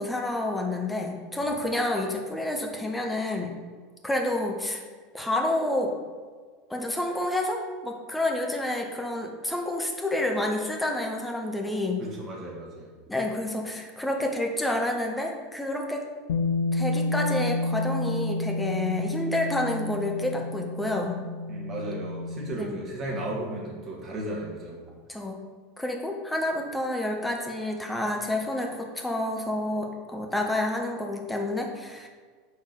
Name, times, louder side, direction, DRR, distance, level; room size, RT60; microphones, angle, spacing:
voice 1, 0.0-3.6 4.0-4.8 5.1-5.9 6.7-12.1 13.1-16.0 16.7-21.2 22.5-22.8 25.1-25.4 25.8-32.1, left 1 dB, 5° left, 1 dB, 0.9 m, -29 dB
voice 2, 12.0-12.9 21.5-24.8, right 1 dB, 35° right, -3 dB, 1.8 m, -35 dB
Bass guitar, 16.3-22.5, left 2 dB, 60° left, 0.6 m, -30 dB
6.5 x 3.7 x 4.7 m, 1.5 s
figure-of-eight pair, 80°, 0 cm